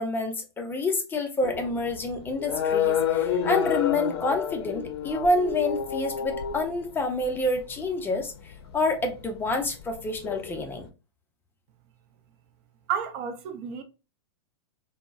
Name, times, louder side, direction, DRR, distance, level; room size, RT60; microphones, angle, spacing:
voice 1, 0.0-8.3 8.7-10.9, left 2 dB, 15° left, 0.5 m, -28 dB
sound 1, 1.4-10.9, left 8 dB, 65° left, 0.5 m, -30 dB
voice 2, 12.9-13.8, right 7 dB, 45° right, 0.4 m, -31 dB
3.6 x 2.0 x 2.3 m
hypercardioid pair, 120°, 14 cm